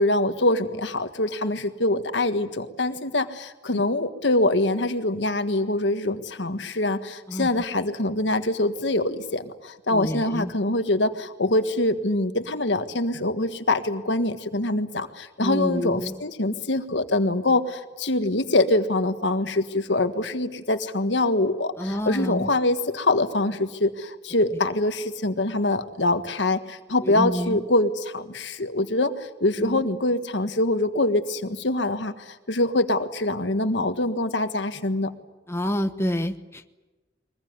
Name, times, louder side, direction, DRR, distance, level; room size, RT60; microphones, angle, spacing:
voice 1, 0.0-35.1, left 2 dB, 85° left, 9 dB, 1.6 m, -24 dB
voice 2, 9.9-10.5 15.4-16.1 21.8-22.5 27.0-27.6 29.6-29.8 35.5-36.7, equal, 15° left, 7 dB, 1.1 m, -28 dB
23.0 x 21.0 x 9.6 m, 1.1 s
head